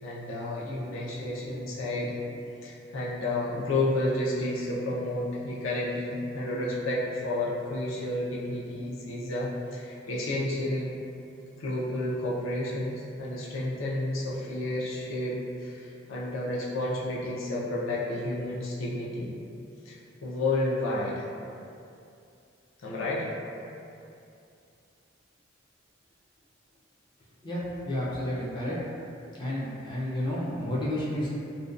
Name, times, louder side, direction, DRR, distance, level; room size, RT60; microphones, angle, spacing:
voice 1, 0.0-2.2 2.6-10.9 11.6-19.3 19.9-20.0 20.2-21.3 22.8-23.3, left 1 dB, 80° left, -6 dB, 0.5 m, -31 dB
voice 2, 27.4-28.8 29.4-31.3, left 1 dB, 25° left, -7 dB, 0.3 m, -31 dB
2.5 x 2.1 x 2.4 m, 2.5 s
head